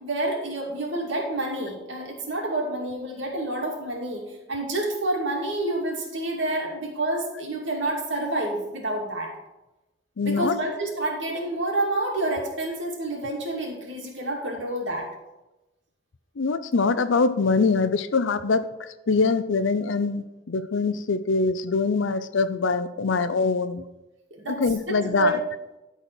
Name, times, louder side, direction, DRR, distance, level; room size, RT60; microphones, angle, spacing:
voice 1, 0.0-9.3 10.2-15.1 24.3-25.4, right 2 dB, 80° right, -1 dB, 2.5 m, -28 dB
voice 2, 10.2-10.6 16.4-23.8 24.5-25.4, left 4 dB, 85° left, 13 dB, 0.6 m, -24 dB
12.0 x 4.3 x 6.1 m, 1.0 s
head